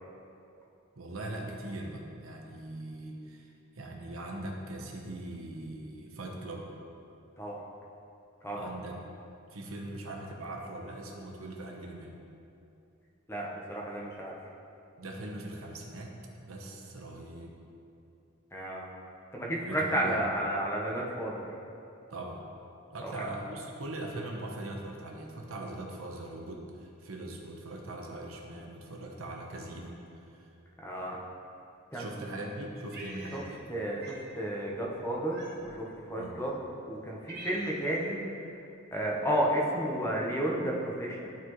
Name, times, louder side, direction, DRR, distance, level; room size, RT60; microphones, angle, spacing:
voice 1, 1.0-6.7 8.5-9.0 9.5-12.2 15.0-16.1 16.4-17.6 19.6-20.3 22.1-22.5 22.9-30.5 31.9-33.6 36.2-36.4, right 1 dB, 85° right, 0 dB, 1.0 m, -41 dB
voice 2, 13.3-14.3 18.5-18.9 19.3-21.5 23.0-23.2 30.8-31.2 31.9-32.0 33.3-33.4 33.7-36.6 36.9-38.2 38.9-41.3, right 1 dB, 10° left, -3 dB, 0.9 m, -32 dB
Cat, 32.9-33.7 34.0-34.3 35.3-35.8 36.5-36.6 37.0-38.0, right 1 dB, 50° right, 1.4 m, -46 dB
12.0 x 4.2 x 3.1 m, 2.7 s
head